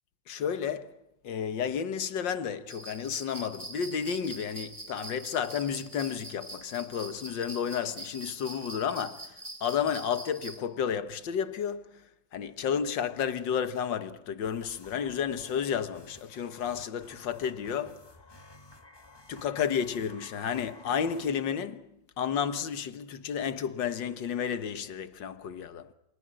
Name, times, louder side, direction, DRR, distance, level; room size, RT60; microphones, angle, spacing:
voice 1, 0.3-1.0 1.2-12.0 12.3-18.0 19.3-21.9 22.2-25.9, left 7 dB, 70° left, 2.0 m, -32 dB
sound 1, 2.7-10.6, right 2 dB, 15° right, 1.9 m, -44 dB
sound 2, 14.4-21.3, left 2 dB, 15° left, 1.4 m, -53 dB
29.0 x 25.5 x 7.8 m
omnidirectional pair, 2.1 m